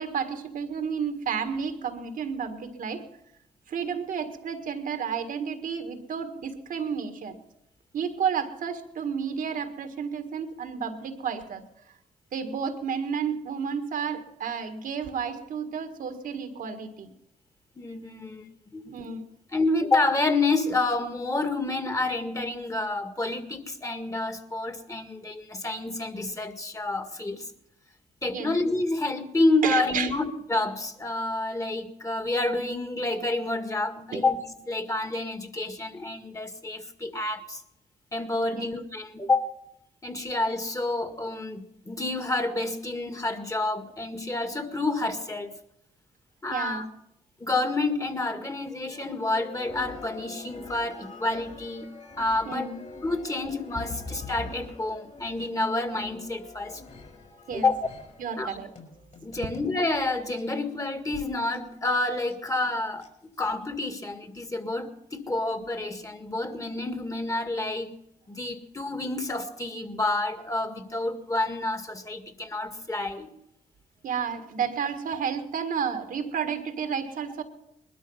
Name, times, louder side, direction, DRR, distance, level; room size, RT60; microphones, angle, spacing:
voice 1, 0.0-3.1 3.7-7.4 7.9-11.6 12.3-17.1 18.2-18.3 18.9-19.2 28.3-28.5 29.6-30.1 34.1-34.3 38.5-38.8 39.2-39.3 46.5-46.9 52.5-52.8 57.5-57.7 58.2-58.7 74.0-77.4, right 6 dB, 70° right, 7 dB, 1.8 m, -31 dB
voice 2, 17.8-18.4 18.7-18.9 19.5-27.5 28.2-34.4 34.7-37.6 38.1-39.5 40.0-45.5 46.4-46.8 47.4-51.9 52.2-52.7 53.0-56.8 57.5-57.7 58.4-58.6 59.2-68.0 68.3-73.3, left 2 dB, 20° left, 8 dB, 2.0 m, -29 dB
sound 1, 48.9-59.8 60.4-60.5 61.1-61.3 61.5-61.6 61.9-62.3 62.6-63.1 63.4-63.7, left 3 dB, 50° left, 4.8 m, -44 dB
20.0 x 12.5 x 5.7 m, 0.80 s
supercardioid pair, 60°, 15 cm